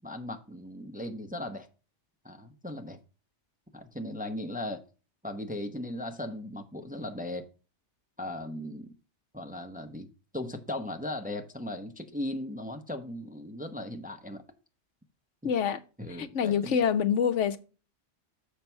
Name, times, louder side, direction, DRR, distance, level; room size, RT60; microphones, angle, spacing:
voice 1, 0.0-1.7 2.2-3.0 3.7-4.8 5.2-7.4 8.2-8.9 9.3-10.1 10.3-14.4 16.0-16.8, left 1 dB, 10° right, 0.7 m, -37 dB
voice 2, 15.4-15.8 16.2-17.6, left 7 dB, 80° left, 1.1 m, -26 dB
7.4 x 5.5 x 4.5 m
omnidirectional pair, 1.2 m